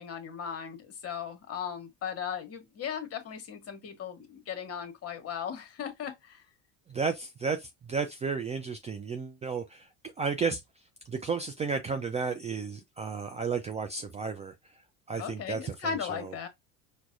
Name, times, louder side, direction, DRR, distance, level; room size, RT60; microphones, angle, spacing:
voice 1, 0.0-6.4 15.2-16.5, left 7 dB, 40° left, 1.2 m, -37 dB
voice 2, 6.9-9.9 10.2-10.6 11.1-14.5 15.1-15.7, right 5 dB, 20° right, 0.3 m, -32 dB
4.6 x 2.2 x 2.5 m
supercardioid pair, 90°, 38 cm